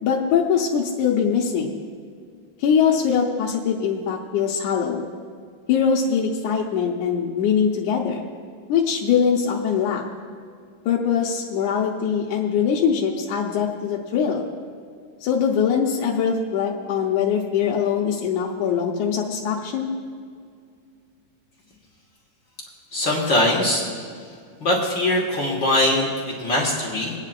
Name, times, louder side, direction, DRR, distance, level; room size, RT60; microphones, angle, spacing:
voice 1, 0.0-1.8 2.6-5.1 5.7-8.3 8.7-10.0 10.9-14.5 15.2-19.9, left 7 dB, 70° left, -2 dB, 2.1 m, -22 dB
voice 2, 22.9-23.8 24.6-27.1, left 1 dB, 45° left, -3 dB, 1.7 m, -21 dB
26.0 x 9.4 x 2.5 m, 2.2 s
omnidirectional pair, 3.9 m